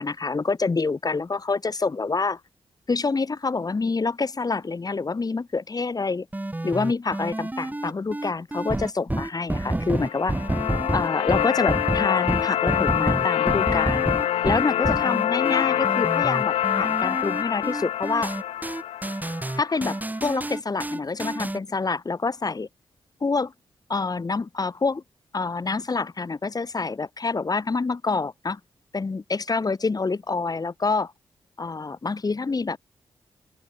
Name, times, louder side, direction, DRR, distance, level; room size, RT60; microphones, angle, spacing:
voice 1, 0.0-2.4 2.9-6.3 6.6-10.3 10.9-14.0 14.4-18.3 19.6-22.7 23.2-23.5 23.9-25.0 25.3-28.6 28.9-31.1 31.6-32.8, left 4 dB, 40° left, 2.1 m, -27 dB
sound 1, 6.3-21.6, right 1 dB, 15° right, 1.7 m, -29 dB
sound 2, 9.9-20.0, left 11 dB, 85° left, 1.0 m, -25 dB
open air
supercardioid pair, 50°, 10 cm